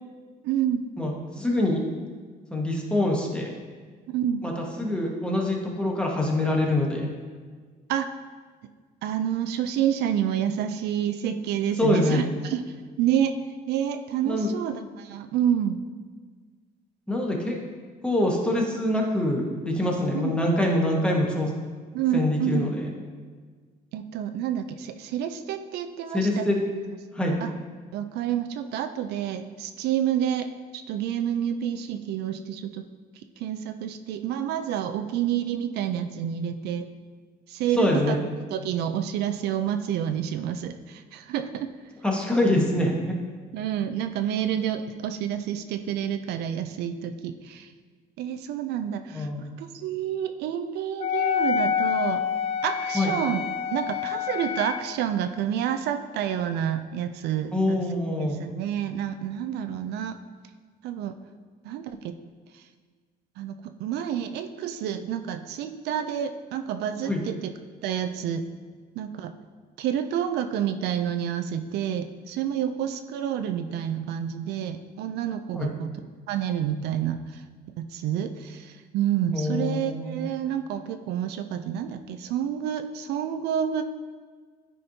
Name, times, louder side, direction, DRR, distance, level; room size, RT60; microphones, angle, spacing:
voice 1, 0.4-0.8 4.1-4.4 7.9-8.1 9.0-12.6 13.0-13.4 13.7-15.8 20.1-20.3 21.9-22.7 23.9-26.5 27.4-27.5 27.9-30.5 30.7-32.9 33.4-36.9 37.5-38.2 38.5-41.7 43.5-47.7 48.2-52.2 52.6-53.4 53.7-57.8 58.2-60.2 60.8-61.1 61.6-62.1 62.5-62.6 63.4-67.5 67.8-68.5 69.0-69.3 69.8-75.9 76.3-77.4 77.8-83.8, right 9 dB, 75° right, 9 dB, 0.4 m, -29 dB
voice 2, 1.0-1.8 2.5-3.6 4.4-7.1 11.8-12.2 14.2-14.5 17.1-17.6 18.0-21.5 22.1-22.9 26.1-26.6 27.1-27.3 37.8-38.2 42.0-43.1 49.1-49.5 52.9-53.1 57.5-58.4 67.0-67.2 75.5-75.7 79.3-80.3, left 1 dB, 5° left, -1 dB, 1.1 m, -25 dB
Wind instrument woodwind instrument, 51.0-54.9, left 8 dB, 40° left, 0.3 m, -27 dB
9.9 x 4.2 x 2.8 m, 1.5 s
cardioid pair, 110°, 17 cm